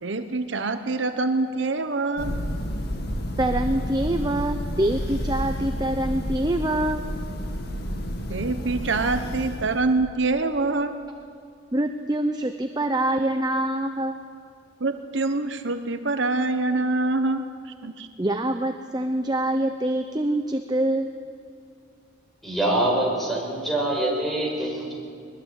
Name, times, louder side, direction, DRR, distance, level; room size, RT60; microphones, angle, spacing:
voice 1, 0.0-2.3 8.3-10.9 14.8-17.4 17.8-18.1, right 3 dB, 65° right, 8 dB, 1.0 m, -25 dB
Thunder, 2.2-10.1, equal, 55° left, 2.2 m, -30 dB
voice 2, 3.4-7.1 11.7-14.2 18.2-21.1 24.7-24.8, right 1 dB, 20° right, 6 dB, 0.8 m, -25 dB
voice 3, 22.4-24.9, right 1 dB, ahead, -2 dB, 5.5 m, -24 dB
22.0 x 21.0 x 8.3 m, 2.3 s
head